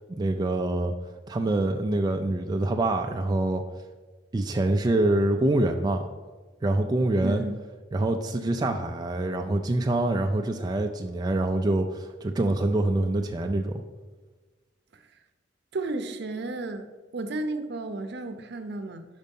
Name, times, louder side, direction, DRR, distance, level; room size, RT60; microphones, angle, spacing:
voice 1, 0.2-0.9 1.3-3.6 4.3-6.0 6.6-7.4 7.9-13.8, right 2 dB, 20° right, 4 dB, 0.3 m, -25 dB
voice 2, 7.2-7.6 15.7-16.9 17.1-19.1, right 2 dB, 65° right, 8 dB, 0.6 m, -33 dB
5.4 x 5.1 x 5.3 m, 1.3 s
head